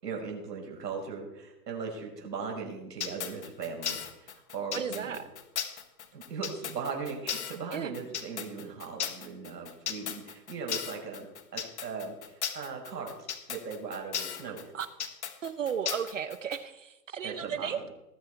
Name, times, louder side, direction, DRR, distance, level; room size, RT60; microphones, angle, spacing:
voice 1, 0.0-5.2 6.1-14.7 17.2-17.8, right 5 dB, 80° right, 1 dB, 5.5 m, -39 dB
sound 1, 3.0-16.6, left 8 dB, 45° left, 1.4 m, -36 dB
voice 2, 4.7-5.2 7.7-7.9 14.7-14.9 15.4-17.9, right 7 dB, 50° right, 13 dB, 0.8 m, -34 dB
19.5 x 9.1 x 4.6 m, 0.96 s
hypercardioid pair, 175°, 49 cm